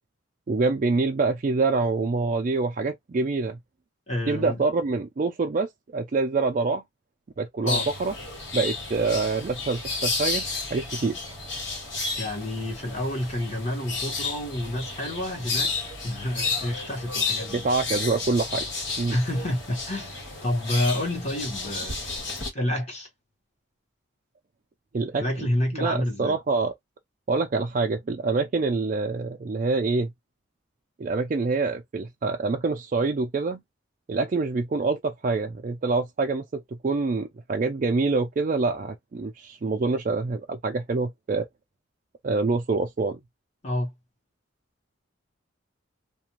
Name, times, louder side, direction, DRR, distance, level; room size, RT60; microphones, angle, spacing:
voice 1, 0.5-3.6 4.3-5.7 5.9-6.8 7.4-8.1 8.5-11.2 17.5-18.7 19.0-19.2 24.9-25.2 25.7-26.7 27.3-30.1 31.0-33.6 34.1-36.4 36.8-41.5 42.2-43.2, right 3 dB, 40° right, 0.4 m, -26 dB
voice 2, 4.1-4.6 7.6-7.9 12.2-15.7 16.0-17.7 19.1-22.0 22.5-23.1 25.2-26.4 43.6-43.9, left 1 dB, 35° left, 1.1 m, -29 dB
sound 1, 7.7-22.5, left 3 dB, 75° left, 1.4 m, -32 dB
2.5 x 2.2 x 3.0 m
head